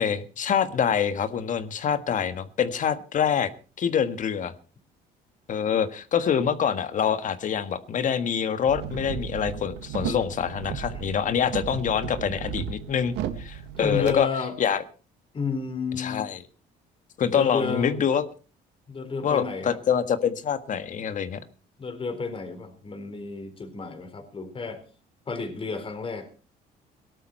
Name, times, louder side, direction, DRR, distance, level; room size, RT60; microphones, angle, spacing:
voice 1, 0.0-3.5 3.8-4.5 5.5-14.3 14.6-14.8 16.0-16.4 17.2-18.3 19.2-21.4, left 8 dB, 50° left, 11 dB, 1.6 m, -25 dB
sound 1, 8.7-14.1, right 9 dB, 85° right, 1.7 m, -34 dB
voice 2, 10.0-10.3 13.8-14.6 15.3-16.3 17.3-18.0 18.9-19.8 21.8-24.8 25.3-26.3, left 5 dB, 30° left, 7 dB, 4.0 m, -31 dB
18.0 x 12.5 x 4.4 m, 0.36 s
cardioid pair, 110°, 17 cm